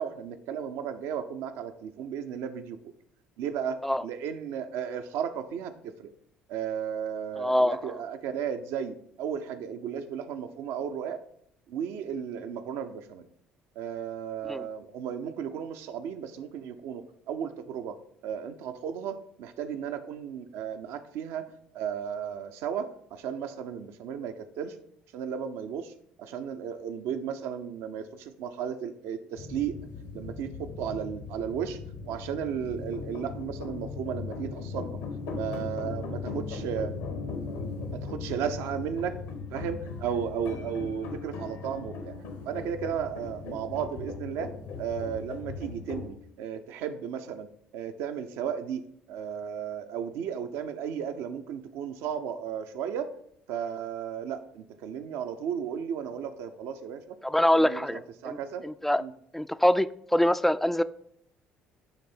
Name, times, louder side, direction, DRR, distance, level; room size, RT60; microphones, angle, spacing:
voice 1, 0.0-2.9 3.4-6.1 6.5-11.2 11.7-13.3 13.8-18.0 18.2-21.4 21.7-24.8 25.1-25.9 26.2-29.8 30.1-31.8 32.1-35.0 35.3-37.0 37.9-39.2 39.5-42.2 42.4-44.5 44.8-47.5 47.7-48.8 49.1-53.1 53.5-57.2 57.5-58.6 59.0-59.1, right 8 dB, 65° right, 9 dB, 0.6 m, -34 dB
voice 2, 7.4-7.9 14.5-14.6 57.2-58.0 58.2-59.0 59.3-60.8, left 1 dB, 5° left, 14 dB, 0.3 m, -24 dB
sound 1, 29.4-46.1, left 4 dB, 75° left, 1.0 m, -38 dB
9.7 x 3.3 x 4.4 m, 0.69 s
hypercardioid pair, 55°, 5 cm